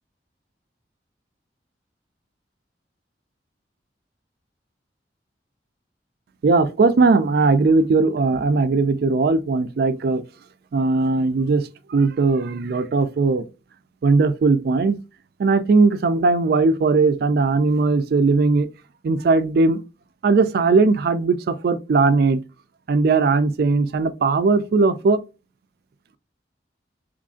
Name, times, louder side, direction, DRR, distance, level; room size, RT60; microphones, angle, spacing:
voice 1, 6.4-10.2 10.7-13.4 14.0-15.0 15.4-18.7 19.0-19.8 20.2-22.4 22.9-25.2, right 3 dB, 60° right, 0.3 m, -19 dB
3.1 x 2.4 x 3.6 m
head